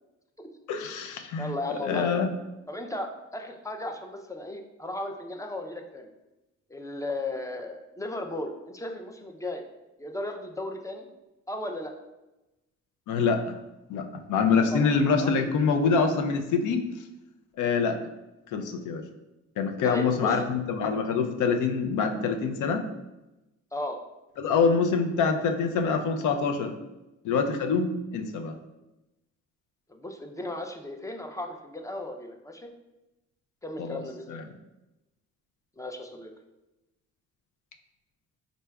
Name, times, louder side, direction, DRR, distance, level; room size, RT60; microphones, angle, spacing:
voice 1, 0.7-1.5 1.8-2.3 13.1-13.5 13.9-16.8 17.6-18.0 18.5-19.0 19.6-22.8 24.4-26.7 27.2-28.6 33.8-34.0 34.3-34.4, left 5 dB, 80° left, 6 dB, 0.5 m, -25 dB
voice 2, 1.4-2.2 2.7-6.1 6.7-9.6 10.0-11.1 11.5-11.9 14.5-14.9 15.2-15.4 19.8-20.4 23.7-24.0 29.9-32.7 33.6-34.5 35.8-36.3, left 1 dB, 10° left, 4 dB, 0.4 m, -35 dB
3.9 x 3.3 x 2.2 m, 0.98 s
cardioid pair, 90°, 30 cm